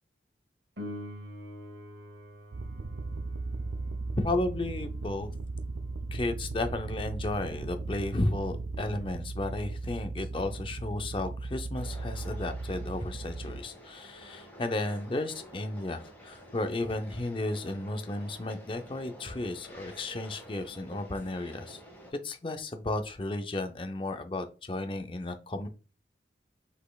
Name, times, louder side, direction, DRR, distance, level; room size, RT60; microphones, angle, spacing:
Piano, 0.8-11.2 18.7-18.8, left 1 dB, 60° right, 1.2 m, -49 dB
sound 1, 2.5-13.6, right 3 dB, 85° right, 0.4 m, -37 dB
voice 1, 4.2-5.3 6.1-21.8 22.2-25.7, left 2 dB, 30° left, 7 dB, 0.5 m, -33 dB
sound 2, 11.7-22.1, equal, 10° left, 1.5 m, -50 dB
5.3 x 4.1 x 2.3 m, 0.33 s
head